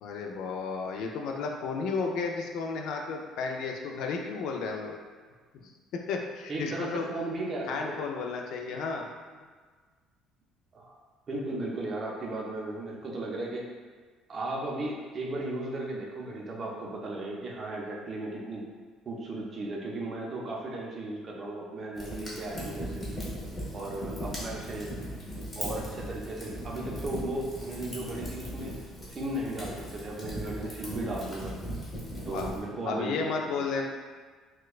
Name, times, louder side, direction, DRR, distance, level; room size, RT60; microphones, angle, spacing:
voice 1, 0.0-5.0 5.9-7.1 7.7-9.1 32.3-32.5 32.9-33.9, left 4 dB, 60° left, 2 dB, 0.3 m, -33 dB
voice 2, 6.5-8.0 8.7-8.8 10.7-11.0 11.3-13.7 14.3-18.6 19.1-23.0 23.7-24.9 25.6-28.8 29.1-31.5 32.3-33.7, right 2 dB, 30° right, -2 dB, 0.5 m, -36 dB
Fire, 21.9-32.6, equal, 20° left, 0.8 m, -38 dB
4.2 x 2.2 x 2.3 m, 1.5 s
cardioid pair, 165°, 0 cm